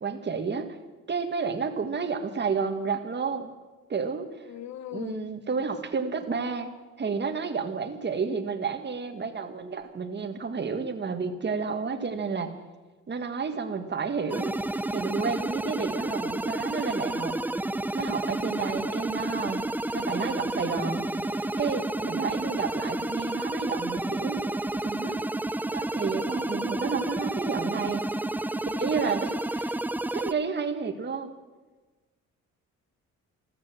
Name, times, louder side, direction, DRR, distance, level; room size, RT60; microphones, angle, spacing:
voice 1, 0.0-0.7 1.1-3.5 3.9-4.4 4.9-6.7 7.0-12.5 13.1-14.5 14.9-17.4 17.9-19.7 19.9-24.4 24.8-25.2 25.7-28.0 28.7-29.8 30.1-31.4, right 5 dB, 35° right, 7 dB, 1.7 m, -31 dB
voice 2, 4.5-5.3, left 11 dB, 65° left, 15 dB, 0.9 m, -38 dB
sound 1, 14.3-30.3, right 1 dB, 5° right, 0.5 m, -30 dB
14.5 x 13.0 x 7.5 m, 1.2 s
cardioid pair, 90°, 30 cm